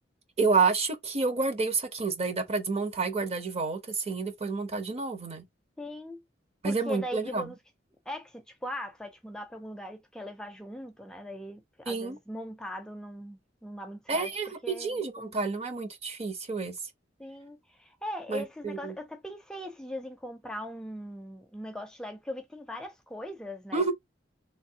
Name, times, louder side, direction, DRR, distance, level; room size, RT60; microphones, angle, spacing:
voice 1, 0.4-5.4 6.6-7.5 11.9-12.2 14.1-16.8 18.3-18.9 23.7-23.9, right 4 dB, 35° right, 0.8 m, -29 dB
voice 2, 5.8-6.2 6.6-7.6 8.1-14.3 14.6-15.3 17.2-23.9, left 1 dB, 5° left, 0.4 m, -40 dB
3.3 x 2.6 x 2.7 m
head